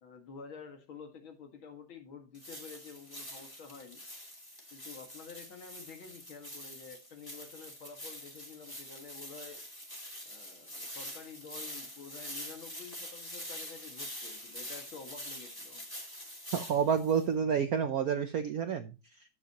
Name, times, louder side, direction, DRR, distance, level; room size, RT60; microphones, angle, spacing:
voice 1, 0.0-4.0 4.7-9.6 10.3-15.8, left 5 dB, 70° left, 5 dB, 2.6 m, -49 dB
sound 1, 2.3-17.2, equal, 10° left, 2.8 m, -45 dB
voice 2, 16.5-19.2, right 7 dB, 75° right, 10 dB, 0.8 m, -30 dB
12.0 x 8.3 x 2.9 m, 0.30 s
omnidirectional pair, 2.3 m